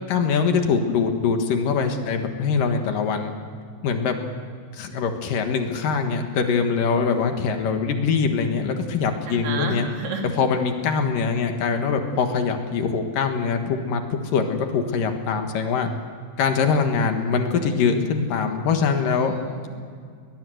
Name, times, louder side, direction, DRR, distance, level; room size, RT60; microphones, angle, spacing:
voice 1, 0.1-3.3 3.8-4.1 4.7-9.9 10.2-15.9 16.4-19.3, left 5 dB, 65° left, 5 dB, 3.0 m, -23 dB
voice 2, 9.3-10.3 11.3-11.4 19.2-19.8, right 4 dB, 85° right, 1 dB, 4.8 m, -32 dB
21.5 x 21.0 x 7.9 m, 2.1 s
omnidirectional pair, 4.4 m